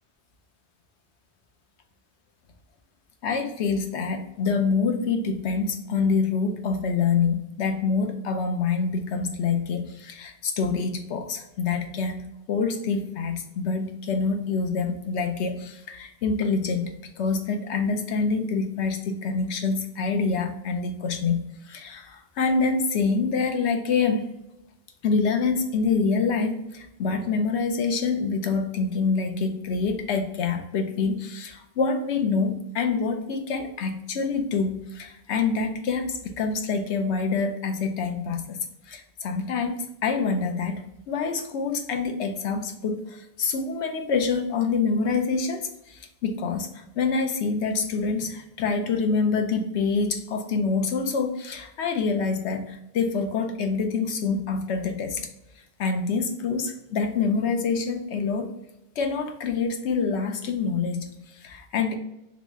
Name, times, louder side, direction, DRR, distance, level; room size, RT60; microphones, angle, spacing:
voice 1, 3.2-12.2 12.5-24.3 25.0-38.6 38.9-55.2 55.8-58.5 59.0-61.1 61.4-62.0, left 4 dB, 85° left, 5 dB, 0.9 m, -26 dB
3.2 x 3.1 x 3.5 m, 0.84 s
omnidirectional pair, 1.1 m